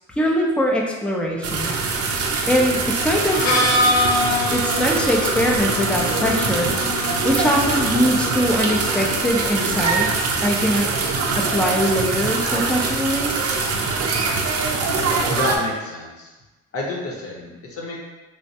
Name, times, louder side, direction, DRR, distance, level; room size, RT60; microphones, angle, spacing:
voice 1, 0.2-1.7 2.5-3.5 4.5-6.8 7.2-10.9 11.4-13.3, equal, 5° left, -1 dB, 0.4 m, -22 dB
sound 1, 1.4-15.6, right 4 dB, 55° right, 0.5 m, -23 dB
Harmonica, 3.3-9.0, left 2 dB, 80° left, 0.7 m, -25 dB
voice 2, 15.3-16.3 16.7-18.0, left 2 dB, 50° left, -2 dB, 0.8 m, -29 dB
3.2 x 2.1 x 2.7 m, 1.1 s
cardioid pair, 90°, 30 cm